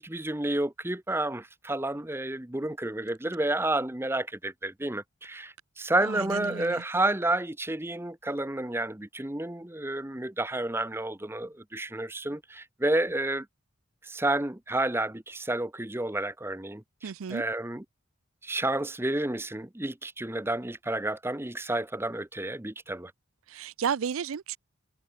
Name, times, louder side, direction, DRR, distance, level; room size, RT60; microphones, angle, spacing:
voice 1, 0.0-13.5 14.0-17.8 18.4-23.1, right 2 dB, 10° right, 0.7 m, -30 dB
voice 2, 6.0-6.8 17.0-17.4 23.5-24.6, right 7 dB, 75° right, 0.4 m, -33 dB
head